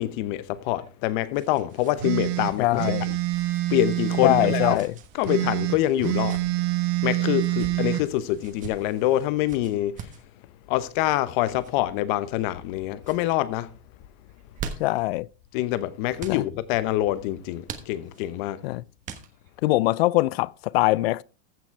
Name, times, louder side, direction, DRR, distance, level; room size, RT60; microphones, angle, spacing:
voice 1, 0.0-3.1 3.7-4.8 5.1-6.4 7.0-10.0 10.7-13.7 15.5-18.6, left 14 dB, 50° left, 1.0 m, -25 dB
sound 1, 0.6-2.0 2.3-2.4 3.3-3.6 4.7-5.1 6.0-6.4 7.3-7.7 8.4-8.7 9.5-10.2 11.4-11.7 12.4-12.7 13.0-13.2 14.3-15.1 16.2-16.4 17.6-18.3 19.0-19.6, right 6 dB, 25° right, 1.2 m, -41 dB
sound 2, 2.0-4.8 5.2-8.0, right 15 dB, 60° right, 1.5 m, -26 dB
voice 2, 2.6-3.0 4.2-4.9 14.8-15.3 16.3-16.4 18.6-18.8 19.6-21.2, left 19 dB, 70° left, 0.5 m, -22 dB
15.0 x 6.1 x 4.5 m
supercardioid pair, 160°, 32 cm